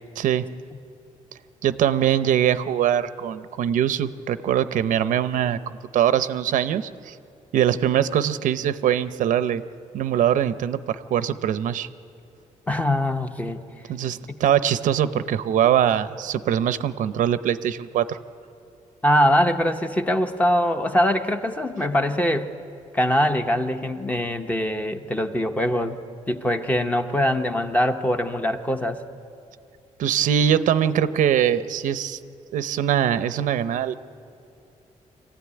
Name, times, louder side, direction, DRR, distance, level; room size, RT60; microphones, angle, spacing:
voice 1, 0.2-0.5 1.6-5.6 5.9-7.1 7.5-9.6 9.9-11.9 13.9-18.2 30.0-32.2 32.5-33.9, right 10 dB, 85° right, 13 dB, 0.7 m, -22 dB
voice 2, 12.7-13.6 19.0-22.5 22.9-26.0 26.3-29.0, equal, 10° left, 6 dB, 0.9 m, -22 dB
24.5 x 15.5 x 9.7 m, 2.5 s
wide cardioid pair, 160°, 13 cm